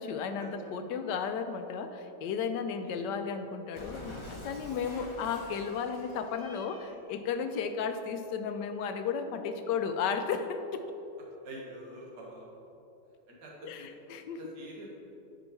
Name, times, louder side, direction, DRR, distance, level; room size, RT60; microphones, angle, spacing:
voice 1, 0.0-10.8 13.6-14.4, left 6 dB, 90° left, 8 dB, 1.2 m, -34 dB
Cat, 3.7-7.0, left 1 dB, 30° left, 0.6 m, -47 dB
voice 2, 4.6-5.0 11.4-12.5 13.3-13.9 14.2-14.9, right 1 dB, 75° right, -3 dB, 2.1 m, -47 dB
9.6 x 5.2 x 4.5 m, 2.9 s
omnidirectional pair, 1.8 m